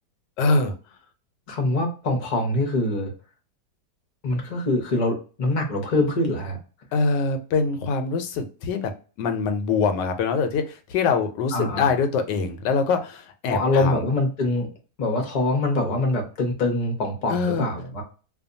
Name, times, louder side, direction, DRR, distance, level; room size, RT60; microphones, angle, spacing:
voice 1, 0.4-0.7 6.9-8.9 9.2-14.0 17.3-17.7, left 4 dB, 90° left, 7 dB, 1.2 m, -24 dB
voice 2, 1.5-3.1 4.2-6.6 11.5-11.9 13.5-14.7 15.0-18.0, left 2 dB, 45° left, 2 dB, 0.5 m, -24 dB
2.7 x 2.2 x 2.5 m, 0.36 s
omnidirectional pair, 1.8 m